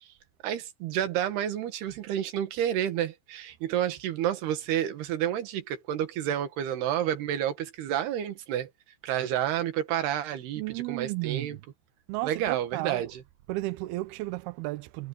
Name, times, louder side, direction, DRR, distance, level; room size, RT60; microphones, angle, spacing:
voice 1, 0.4-8.7 9.0-10.6 10.9-11.6 12.2-13.2, right 11 dB, 65° right, 3.5 m, -30 dB
voice 2, 10.6-11.6 12.1-13.1 13.5-15.1, right 20 dB, 90° right, 2.2 m, -33 dB
omnidirectional pair, 5.4 m